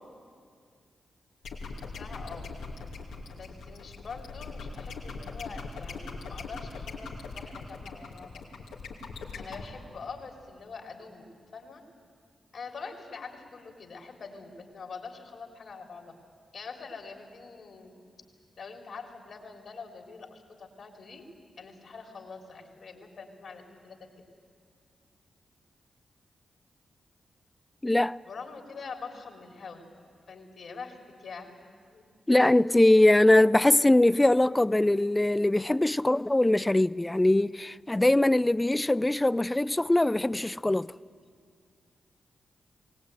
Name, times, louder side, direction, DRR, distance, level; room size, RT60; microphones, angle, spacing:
sound 1, 1.4-9.7, left 4 dB, 90° left, 2.7 m, -40 dB
voice 1, 1.9-2.6 3.2-8.4 9.3-11.2 11.5-11.8 12.5-16.1 16.5-18.0 18.6-21.2 21.6-24.0 28.2-29.9 30.3-31.6 31.9-32.0, left 4 dB, 70° left, 3.4 m, -44 dB
voice 2, 27.8-28.2 32.3-40.9, left 1 dB, 20° left, 0.5 m, -22 dB
21.0 x 18.5 x 9.0 m
supercardioid pair, 45°, 0 cm